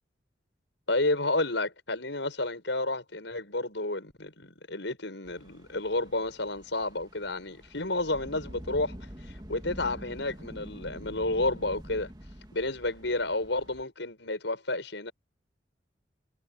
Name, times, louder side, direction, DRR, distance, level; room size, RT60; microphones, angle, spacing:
voice 1, 0.9-9.0 9.5-12.1 12.5-15.1, left 2 dB, 70° left, 6.0 m, -31 dB
sound 1, 5.2-13.8, equal, 20° right, 2.1 m, -46 dB
head